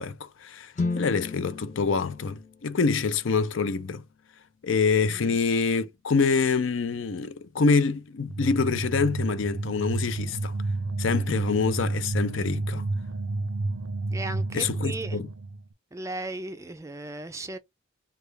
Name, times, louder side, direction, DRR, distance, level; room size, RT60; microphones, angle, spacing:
voice 1, 0.0-4.0 4.6-10.5 11.0-12.8 14.5-15.3, left 4 dB, 65° left, 0.5 m, -26 dB
sound 1, 0.7-4.8, left 3 dB, 35° left, 0.8 m, -36 dB
voice 2, 5.0-5.4 14.1-15.2 15.9-17.6, right 2 dB, 15° right, 0.3 m, -36 dB
sound 2, 8.3-15.6, right 2 dB, 75° right, 0.5 m, -30 dB
3.3 x 2.3 x 3.2 m
head